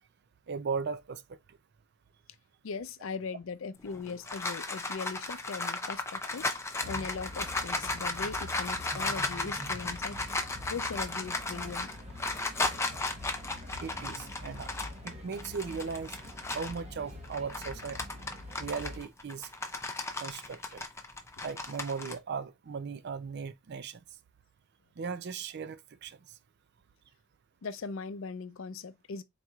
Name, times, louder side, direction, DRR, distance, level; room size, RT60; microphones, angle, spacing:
voice 1, 0.5-1.4 13.8-14.7 15.0-16.2 16.5-18.0 18.6-19.5 20.2-20.8 21.4-24.0 25.0-26.2, right 5 dB, 55° right, 0.4 m, -37 dB
voice 2, 2.6-6.5 6.8-10.2 10.7-11.9 27.6-29.2, left 5 dB, 65° left, 0.5 m, -39 dB
sound 1, 3.9-16.8 17.2-22.1, left 2 dB, 15° left, 0.5 m, -35 dB
sound 2, 6.8-19.0, left 1 dB, 30° right, 0.9 m, -45 dB
4.4 x 4.0 x 2.4 m
head